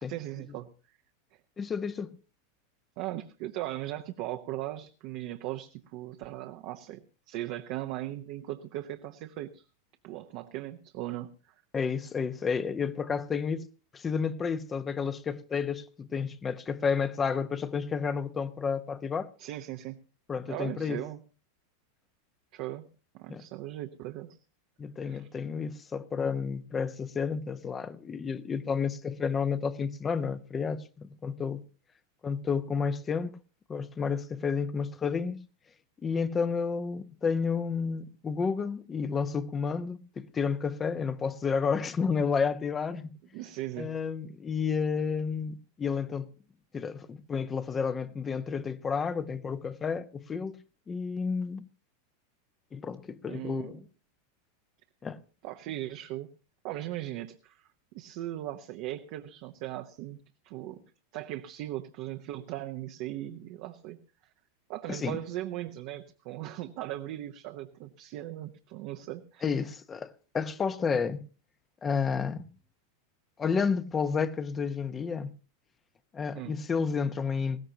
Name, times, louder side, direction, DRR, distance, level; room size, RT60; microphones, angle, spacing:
voice 1, 0.1-0.7 3.0-9.6 10.0-11.5 19.4-20.0 20.5-21.2 22.5-22.9 23.1-24.4 25.1-25.3 43.3-43.9 53.3-53.8 55.4-56.3 56.6-57.7 57.9-60.2 60.4-60.8 61.1-64.0 64.7-69.5 76.3-76.5, right 14 dB, 55° right, 0.9 m, -38 dB
voice 2, 1.6-2.1 11.7-13.7 13.9-19.3 20.3-21.0 23.3-23.5 24.8-31.6 32.2-33.4 33.7-35.4 36.0-43.1 43.8-46.3 46.7-50.6 50.9-51.6 52.7-53.8 55.0-55.2 64.9-65.2 69.4-71.2 71.8-72.4 73.4-75.3 76.1-77.6, left 5 dB, 25° left, 0.9 m, -31 dB
19.5 x 15.5 x 2.9 m
hypercardioid pair, 100°, 0 cm